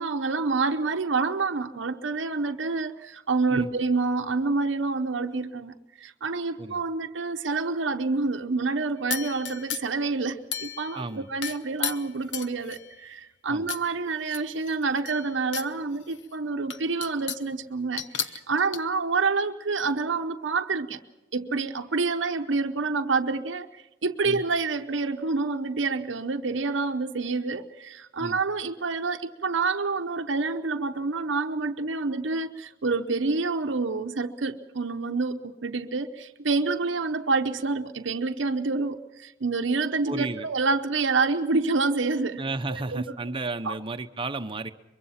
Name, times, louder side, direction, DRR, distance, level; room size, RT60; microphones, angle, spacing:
voice 1, 0.0-21.0 21.3-42.4 42.7-43.0 43.6-43.8, right 3 dB, 75° right, 0.8 m, -28 dB
sound 1, 9.1-10.0 10.5-11.1 11.4-13.0 13.7-13.8 14.2-15.7 16.1-16.2 16.7-17.5 18.0-18.8, left 8 dB, 70° left, 1.0 m, -34 dB
voice 2, 10.9-11.3 13.5-13.7 24.2-24.4 28.2-28.4 40.1-40.5 42.4-44.7, right 3 dB, 30° right, 0.9 m, -33 dB
23.5 x 23.0 x 5.8 m
head